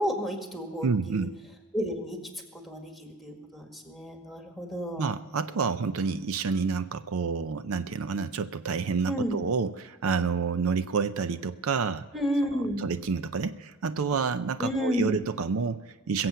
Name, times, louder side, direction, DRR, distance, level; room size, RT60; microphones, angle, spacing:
voice 1, 0.0-1.3 1.7-2.2 2.6-5.1 9.1-9.4 12.1-12.8 14.6-15.3, equal, ahead, 3 dB, 1.8 m, -31 dB
voice 2, 0.8-1.3 5.0-12.1 12.5-16.3, right 5 dB, 70° right, 12 dB, 0.5 m, -29 dB
21.5 x 7.8 x 5.6 m, 1.3 s
head